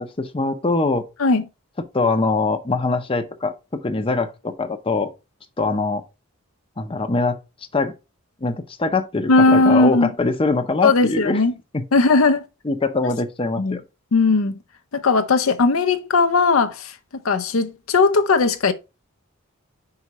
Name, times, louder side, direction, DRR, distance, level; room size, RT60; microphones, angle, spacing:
voice 1, 0.0-1.0 1.9-3.5 3.8-5.1 5.6-6.0 6.8-7.4 7.7-7.9 8.4-11.4 11.7-11.8 12.6-13.8, left 3 dB, 25° left, 0.7 m, -22 dB
voice 2, 9.3-10.1 10.8-11.5 11.9-12.4 13.6-13.8 14.1-14.6 14.9-16.9 17.2-18.7, left 3 dB, 80° left, 0.7 m, -17 dB
5.0 x 4.8 x 4.2 m
head